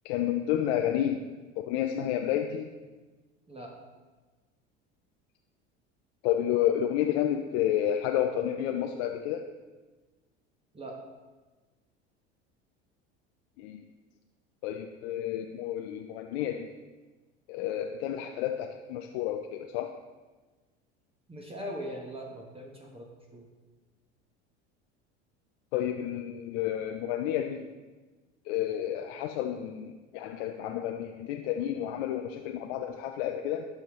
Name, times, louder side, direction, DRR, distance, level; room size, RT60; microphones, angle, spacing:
voice 1, 0.0-1.2 1.6-2.7 6.2-9.5 13.6-13.8 14.6-16.7 17.5-19.9 25.7-27.6 28.5-33.7, left 11 dB, 70° left, 4 dB, 0.6 m, -30 dB
voice 2, 21.3-23.5, equal, 15° right, -1 dB, 1.2 m, -41 dB
12.0 x 4.9 x 3.1 m, 1.3 s
hypercardioid pair, 85°, 33 cm